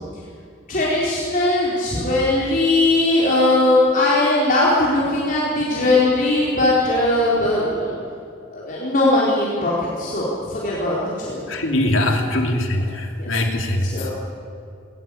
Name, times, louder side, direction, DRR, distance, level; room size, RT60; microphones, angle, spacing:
voice 1, 0.7-8.0 8.5-9.7 10.0-11.4 13.2-13.3 13.9-14.1, left 2 dB, 45° left, -6 dB, 4.5 m, -19 dB
voice 2, 11.5-14.1, left 1 dB, 80° left, 3 dB, 3.1 m, -22 dB
20.0 x 19.0 x 8.6 m, 2.4 s
head